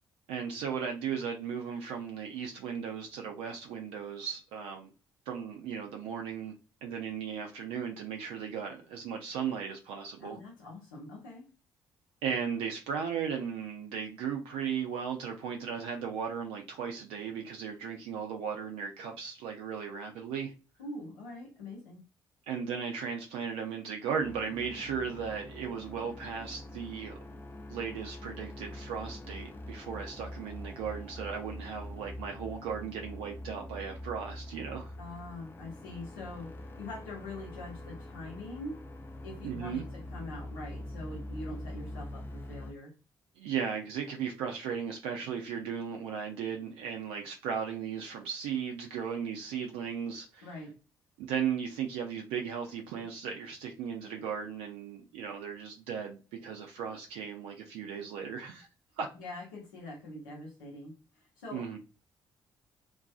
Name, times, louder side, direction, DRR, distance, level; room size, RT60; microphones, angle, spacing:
voice 1, 0.3-4.9 5.3-6.5 6.8-10.4 12.2-20.5 22.5-27.2 27.7-34.9 39.4-39.8 43.4-50.5 51.2-58.7 59.0-59.1 61.5-61.8, right 7 dB, 65° right, 0.4 m, -36 dB
voice 2, 10.2-11.5 20.8-22.0 35.0-38.8 39.2-42.9 50.4-50.7 59.1-61.6, left 2 dB, 75° left, 0.8 m, -44 dB
Spooky ambience, 24.2-42.7, left 1 dB, 20° left, 0.5 m, -44 dB
2.4 x 2.3 x 2.3 m
figure-of-eight pair, 40°, 11 cm